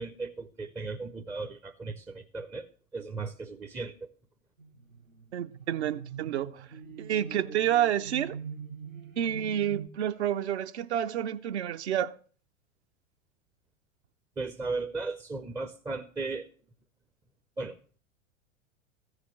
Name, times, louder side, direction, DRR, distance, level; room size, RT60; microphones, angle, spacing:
voice 1, 0.0-2.7 2.9-4.1 14.4-16.5 17.6-17.8, right 3 dB, 10° right, 0.5 m, -36 dB
sound 1, 4.6-9.9, right 6 dB, 75° right, 1.2 m, -43 dB
voice 2, 5.3-6.7 7.0-8.4 9.2-12.1, right 10 dB, 55° right, 0.6 m, -29 dB
14.5 x 4.9 x 7.3 m
figure-of-eight pair, 90°, 40 cm